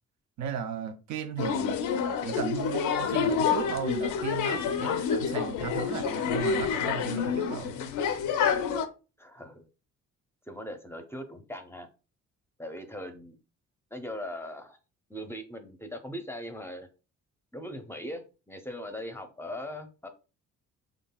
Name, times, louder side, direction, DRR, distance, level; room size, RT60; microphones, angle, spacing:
voice 1, 0.4-1.8 2.2-7.7, right 7 dB, 70° right, 0.5 m, -35 dB
sound 1, 1.4-8.9, left 7 dB, 80° left, 0.5 m, -28 dB
voice 2, 9.2-9.7 10.5-11.9 12.6-13.4 13.9-14.8 15.1-16.9 17.5-20.1, left 1 dB, 10° left, 0.6 m, -40 dB
3.8 x 3.5 x 2.2 m
cardioid pair, 90°, 30 cm